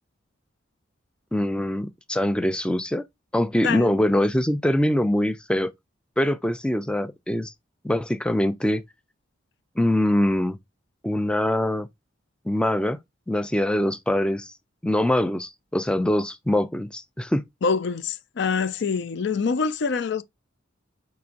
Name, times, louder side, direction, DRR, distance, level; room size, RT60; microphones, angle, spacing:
voice 1, 1.3-3.0 3.3-5.7 6.2-7.5 7.8-8.8 9.8-10.6 11.0-11.9 12.5-13.0 13.3-14.5 14.8-17.4, left 1 dB, 5° left, 0.4 m, -23 dB
voice 2, 3.6-4.0 17.6-20.2, left 5 dB, 60° left, 0.5 m, -25 dB
5.8 x 2.9 x 2.5 m
head